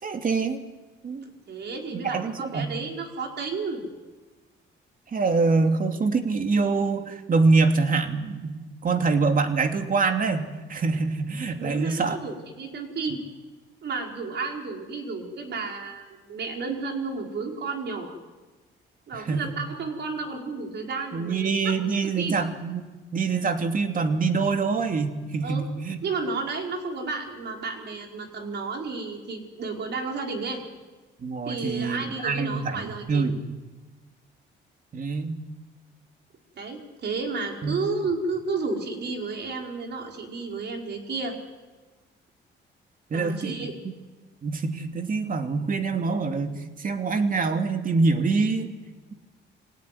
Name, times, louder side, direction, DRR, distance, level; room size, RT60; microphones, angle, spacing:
voice 1, 0.0-0.6 1.0-1.3 1.9-2.7 5.1-12.2 19.1-19.5 21.1-22.9 23.1-26.0 31.2-33.6 34.9-35.4 37.6-37.8 43.1-43.7 44.4-48.7, right 4 dB, 45° right, 5 dB, 2.8 m, -25 dB
voice 2, 1.5-3.9 11.6-13.2 13.8-18.2 19.1-21.7 22.0-22.4 25.4-25.7 26.0-30.6 31.5-33.3 36.6-41.4 43.1-43.7, right 4 dB, 60° right, 2 dB, 5.2 m, -32 dB
25.5 x 17.5 x 9.6 m, 1.3 s
cardioid pair, 90°, 20 cm